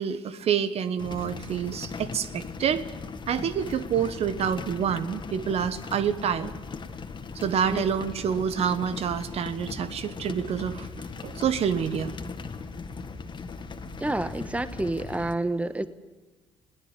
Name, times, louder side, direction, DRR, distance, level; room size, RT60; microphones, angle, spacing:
voice 1, 0.0-2.8 3.3-6.5 7.3-10.9 11.2-12.1, right 8 dB, 55° right, 12 dB, 1.3 m, -27 dB
sound 1, 1.0-15.3, left 4 dB, 40° left, 1.8 m, -39 dB
voice 2, 14.0-15.9, right 2 dB, 10° right, 13 dB, 1.3 m, -29 dB
21.0 x 18.0 x 8.2 m, 1.2 s
hypercardioid pair, 50°, 13 cm